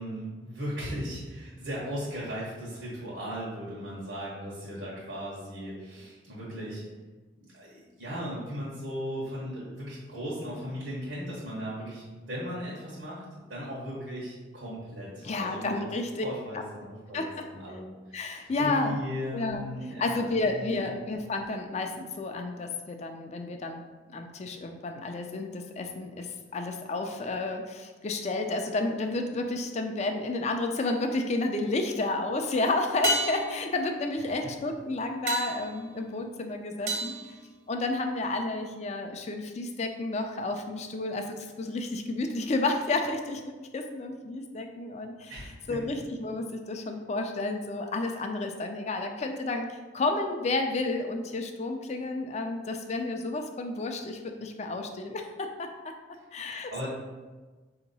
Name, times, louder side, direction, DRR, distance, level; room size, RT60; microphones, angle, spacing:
voice 1, 0.0-6.8 7.4-13.2 13.5-15.8 16.2-20.9 34.4-34.5 45.3-45.8 56.7-56.9, equal, 80° right, -7 dB, 1.2 m, -37 dB
voice 2, 15.2-16.2 16.5-16.6 17.1-17.5 18.1-19.0 19.3-19.6 20.0-23.8 24.1-37.1 37.7-45.3 45.7-55.9 56.3-56.9, left 2 dB, 35° left, 5 dB, 0.4 m, -31 dB
sound 1, 30.7-31.3 33.0-38.2 42.6-42.7, right 1 dB, 60° right, 0.9 m, -34 dB
4.4 x 2.9 x 4.0 m, 1.3 s
head